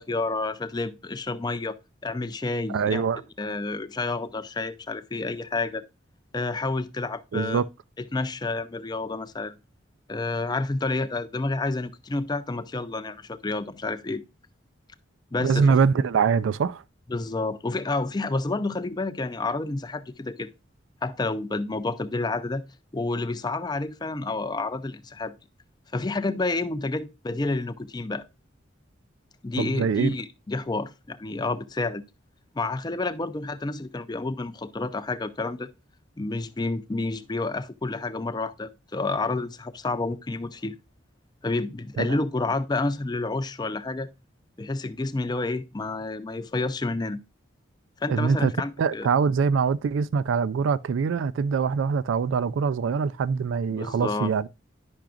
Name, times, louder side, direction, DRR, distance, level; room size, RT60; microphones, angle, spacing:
voice 1, 0.0-1.8 2.0-5.8 6.3-7.6 8.0-9.5 10.1-14.2 15.3-15.8 17.1-20.5 21.0-22.6 22.9-25.3 25.9-28.2 29.4-32.0 32.6-35.7 36.2-40.7 41.4-44.1 44.6-47.2 48.0-49.1 53.7-54.3, left 3 dB, 20° left, 0.4 m, -29 dB
voice 2, 2.7-3.2 7.3-7.7 15.4-16.8 29.6-30.1 42.0-42.2 48.1-48.5 48.8-54.5, right 5 dB, 75° right, 0.3 m, -23 dB
10.5 x 5.8 x 2.4 m
head